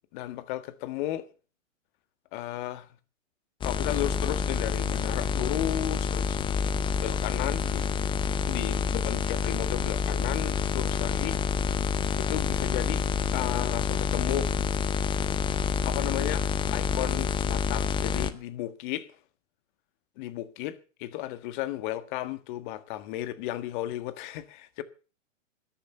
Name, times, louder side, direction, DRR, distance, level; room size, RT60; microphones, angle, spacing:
voice 1, 0.1-1.2 2.3-2.9 3.6-6.4 7.0-7.8 8.5-11.4 12.2-13.0 13.3-14.6 15.8-19.2 20.2-24.8, left 14 dB, 40° left, 1.6 m, -34 dB
sound 1, 3.6-18.3, left 6 dB, 15° left, 0.7 m, -28 dB
13.5 x 10.5 x 6.7 m
hypercardioid pair, 120°, 38 cm